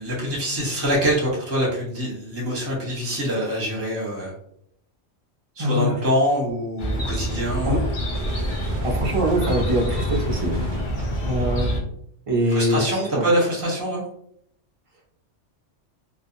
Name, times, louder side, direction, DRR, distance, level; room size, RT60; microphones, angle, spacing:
voice 1, 0.0-4.3 5.6-7.9 12.5-14.1, equal, 15° right, -4 dB, 0.8 m, -24 dB
voice 2, 5.6-6.0 7.7-7.8 8.8-10.5 11.3-11.7 12.3-13.2, equal, 55° right, -2 dB, 0.3 m, -23 dB
Chirp tweet, 6.8-11.8, equal, 50° left, 0.6 m, -26 dB
sound 1, 8.1-11.3, right 2 dB, 90° right, 0.9 m, -38 dB
2.7 x 2.3 x 2.5 m, 0.70 s
omnidirectional pair, 1.2 m